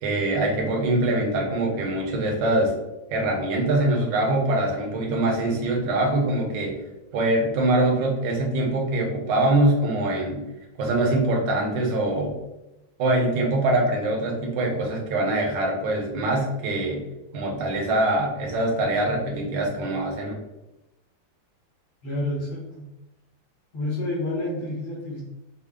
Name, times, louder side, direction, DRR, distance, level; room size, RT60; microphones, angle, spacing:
voice 1, 0.0-2.7 3.1-6.8 7.1-10.4 10.8-12.4 13.0-17.0 17.3-20.4, right 1 dB, 65° right, 0 dB, 1.5 m, -23 dB
voice 2, 22.0-22.9 23.7-25.2, left 1 dB, 80° left, -6 dB, 2.2 m, -29 dB
5.4 x 2.2 x 3.6 m, 0.94 s
omnidirectional pair, 2.3 m